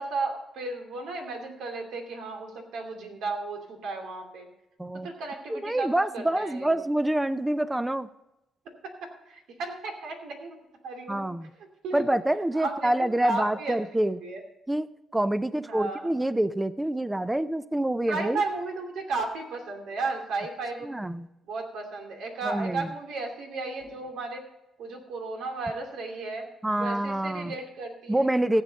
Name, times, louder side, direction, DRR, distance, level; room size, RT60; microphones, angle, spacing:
voice 1, 0.0-4.5 5.0-6.7 8.8-10.6 10.8-11.3 11.8-12.2 12.5-13.8 14.0-14.4 15.5-16.1 18.1-20.9 21.4-24.4 24.8-26.5 26.8-28.3 28.5-28.6, right 3 dB, 85° right, 3 dB, 2.7 m, -34 dB
voice 2, 5.5-8.1 11.1-11.5 11.9-14.2 14.7-14.9 15.1-18.4 20.8-21.3 22.4-22.9 26.6-27.5 28.1-28.6, right 1 dB, 10° right, 14 dB, 0.5 m, -26 dB
16.0 x 8.4 x 4.0 m, 0.93 s
cardioid pair, 90°, 0 cm